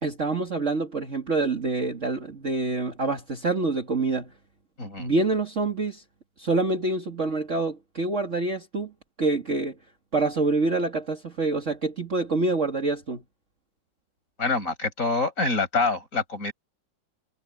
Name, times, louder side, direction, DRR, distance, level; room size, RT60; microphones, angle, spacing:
voice 1, 0.0-4.3 5.0-6.0 6.4-8.9 9.2-9.8 10.1-13.2, right 3 dB, 40° right, 2.4 m, -26 dB
voice 2, 14.4-16.5, left 3 dB, 40° left, 6.7 m, -26 dB
omnidirectional pair, 2.1 m